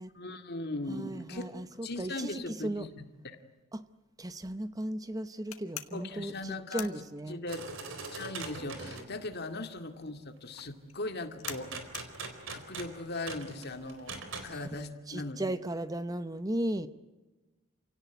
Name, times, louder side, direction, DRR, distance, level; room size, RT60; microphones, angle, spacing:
voice 1, 0.1-1.5 1.8-2.9 3.2-3.4 5.9-6.9 7.3-7.6 7.9-11.7 12.5-14.2 14.4-15.4, left 2 dB, 50° left, 7 dB, 2.2 m, -39 dB
voice 2, 0.9-2.9 3.7-3.8 4.2-7.4 14.7-14.8 15.1-16.9, right 1 dB, 15° right, 12 dB, 0.8 m, -36 dB
sound 1, 5.5-7.7 8.0-13.8, left 12 dB, 90° left, 1.9 m, -46 dB
sound 2, 7.5-9.1 11.4-14.6, right 4 dB, 65° right, 4.1 m, -41 dB
29.0 x 17.5 x 9.3 m, 1.2 s
head